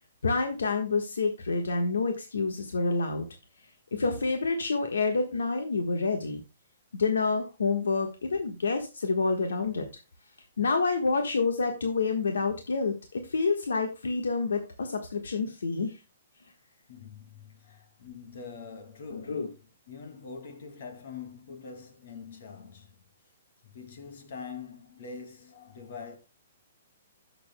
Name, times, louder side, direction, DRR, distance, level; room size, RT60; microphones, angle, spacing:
voice 1, 0.2-3.3 3.9-6.4 7.0-9.9 10.6-16.0 19.1-19.5, left 4 dB, 90° left, 1.3 m, -28 dB
voice 2, 16.9-19.5 19.9-22.9 23.7-26.2, left 5 dB, 65° left, 2.3 m, -44 dB
16.0 x 6.9 x 2.2 m
hypercardioid pair, 140°, 0 cm